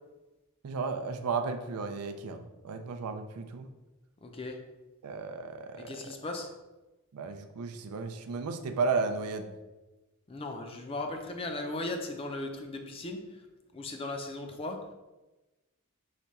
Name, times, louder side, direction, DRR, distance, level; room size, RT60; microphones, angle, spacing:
voice 1, 0.6-3.7 5.0-5.9 7.1-9.5, right 4 dB, 90° right, 7 dB, 0.4 m, -34 dB
voice 2, 4.2-4.6 5.7-6.5 10.3-13.4 13.7-14.9, left 2 dB, 25° left, 4 dB, 0.4 m, -37 dB
4.9 x 2.2 x 4.1 m, 1.1 s
head